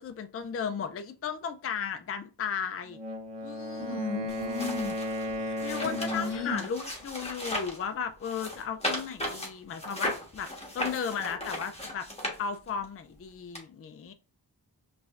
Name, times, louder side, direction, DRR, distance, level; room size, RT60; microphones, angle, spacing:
voice 1, 0.0-3.0 3.4-4.0 5.4-10.5 10.7-12.1 12.4-14.1, left 7 dB, 35° left, 0.4 m, -35 dB
Wind instrument woodwind instrument, 2.9-6.7, left 1 dB, 70° right, 1.0 m, -35 dB
voice 2, 3.8-4.9 5.5-5.6 5.8-6.7, left 2 dB, 65° left, 0.7 m, -34 dB
sound 1, 4.3-7.8 8.2-12.9 13.6-13.7, left 1 dB, 15° left, 1.3 m, -36 dB
4.9 x 3.2 x 2.5 m
wide cardioid pair, 50°, 43 cm